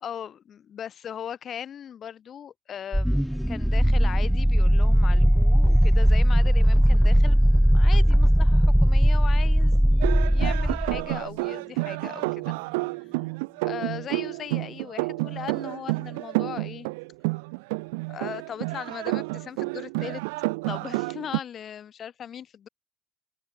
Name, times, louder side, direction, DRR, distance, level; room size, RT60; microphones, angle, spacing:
voice 1, 0.0-3.2 3.5-12.5 13.6-16.9 18.1-20.2 20.7-22.7, left 9 dB, 55° left, 3.3 m, -38 dB
sound 1, 2.9-11.1, equal, ahead, 0.4 m, -19 dB
sound 2, 10.0-21.4, right 27 dB, 85° right, 0.8 m, -30 dB
open air
hypercardioid pair, 60°, 0 cm